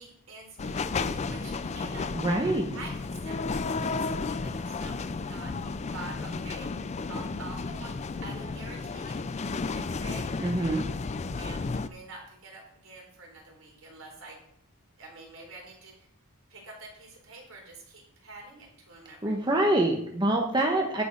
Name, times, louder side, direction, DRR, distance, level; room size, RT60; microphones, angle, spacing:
voice 1, 0.0-2.2 2.7-6.7 7.1-10.4 11.4-14.4 15.0-16.1 16.5-19.6, right 2 dB, 65° right, 0 dB, 3.7 m, -47 dB
sound 1, 0.6-11.9, left 4 dB, 30° left, 0.4 m, -33 dB
voice 2, 2.1-2.6 10.4-10.8 19.2-21.0, right 1 dB, 20° right, 1 dB, 1.1 m, -25 dB
10.0 x 7.7 x 5.4 m, 0.70 s
head